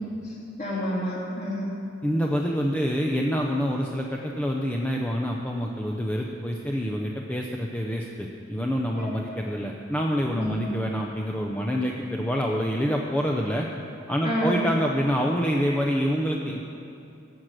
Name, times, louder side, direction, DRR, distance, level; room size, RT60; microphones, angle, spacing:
voice 1, 0.2-1.7 8.9-9.1 10.4-10.6 14.2-14.6, equal, 35° left, -5 dB, 3.1 m, -29 dB
voice 2, 2.0-13.7 14.1-16.7, equal, 10° left, 0 dB, 0.6 m, -27 dB
17.0 x 6.5 x 7.6 m, 2.6 s
head